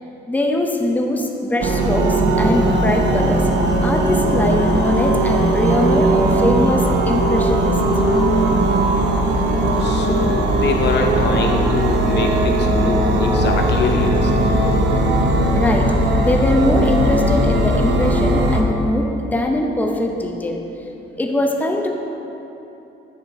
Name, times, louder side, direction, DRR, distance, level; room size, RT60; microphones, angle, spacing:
voice 1, 0.3-3.5 3.8-7.8 15.5-15.9 16.2-20.6 21.2-21.9, left 1 dB, 10° left, 1 dB, 0.6 m, -21 dB
sound 1, 1.6-18.6, right 1 dB, 60° right, 0.7 m, -18 dB
voice 2, 9.8-14.5 14.8-14.9, left 3 dB, 60° left, 2 dB, 0.7 m, -23 dB
8.3 x 5.0 x 3.5 m, 3.0 s
cardioid pair, 90°, 20 cm